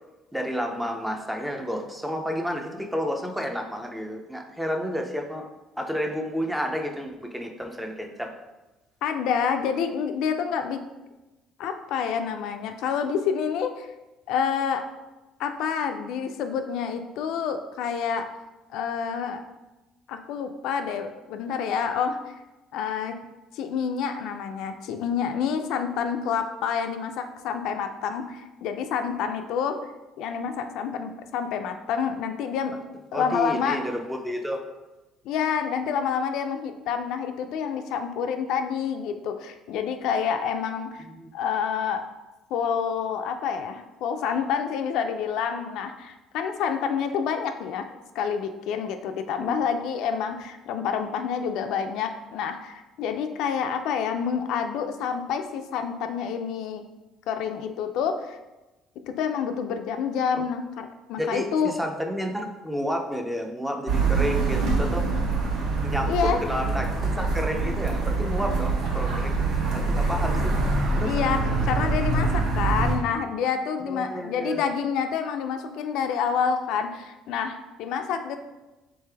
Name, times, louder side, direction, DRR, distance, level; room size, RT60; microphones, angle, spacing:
voice 1, 0.3-5.4 5.8-8.3 33.1-34.6 41.1-41.3 49.4-49.6 61.2-65.1 65.8-69.4 69.7-70.5 71.0-71.1 73.9-74.6, equal, 5° right, 3 dB, 0.4 m, -30 dB
voice 2, 9.0-10.8 11.6-13.9 14.3-14.8 15.4-18.3 18.7-19.4 20.1-22.2 22.7-23.2 23.5-29.8 30.2-32.7 33.1-33.8 35.2-41.0 41.3-42.0 42.5-47.9 48.1-56.8 57.3-58.4 59.2-61.7 66.1-66.4 71.0-78.4, left 7 dB, 70° left, 7 dB, 0.3 m, -28 dB
sound 1, 63.9-73.0, right 3 dB, 70° right, 1.0 m, -25 dB
4.0 x 3.2 x 3.3 m, 1.1 s
cardioid pair, 155°, 0 cm